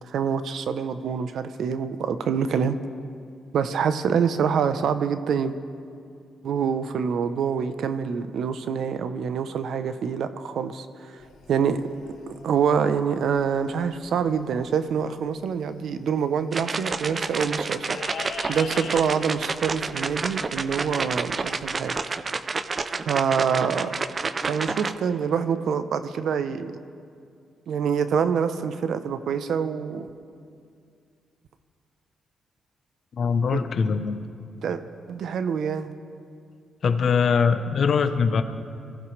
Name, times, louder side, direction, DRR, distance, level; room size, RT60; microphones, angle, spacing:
voice 1, 0.0-2.8 3.5-5.6 6.4-11.1 11.5-11.9 12.3-22.0 23.1-23.9 24.4-26.8 27.7-30.1 33.5-33.6 34.6-34.8 35.1-35.9, right 7 dB, 70° right, 11 dB, 0.8 m, -26 dB
sound 1, 11.2-21.8, left 5 dB, 90° left, 1.4 m, -44 dB
sound 2, 16.5-24.9, right 4 dB, 35° right, 0.5 m, -29 dB
voice 2, 33.2-34.2 36.8-38.4, left 5 dB, 55° left, 8 dB, 0.9 m, -22 dB
23.5 x 15.0 x 3.3 m, 2.3 s
cardioid pair, 90°, 0 cm